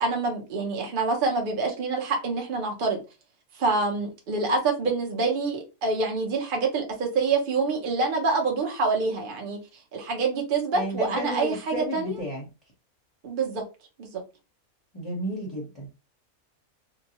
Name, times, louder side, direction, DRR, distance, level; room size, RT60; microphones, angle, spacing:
voice 1, 0.0-3.0 3.6-9.6 9.9-12.2 13.2-13.6 14.0-14.2, right 3 dB, 45° right, 0.7 m, -26 dB
voice 2, 10.7-12.4 14.9-15.9, equal, 25° left, 0.7 m, -32 dB
2.6 x 2.1 x 2.8 m
omnidirectional pair, 1.5 m